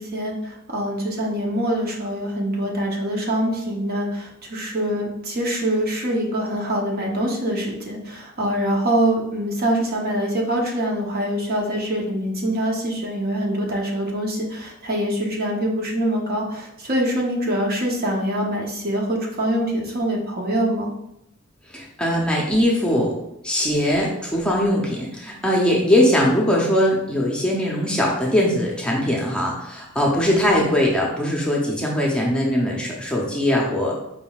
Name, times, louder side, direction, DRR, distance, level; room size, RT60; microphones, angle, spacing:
voice 1, 0.0-20.9, right 1 dB, 45° right, -1 dB, 0.8 m, -24 dB
voice 2, 21.7-23.1 23.4-33.9, left 1 dB, 5° left, -3 dB, 0.6 m, -21 dB
5.0 x 3.6 x 2.3 m, 0.83 s
head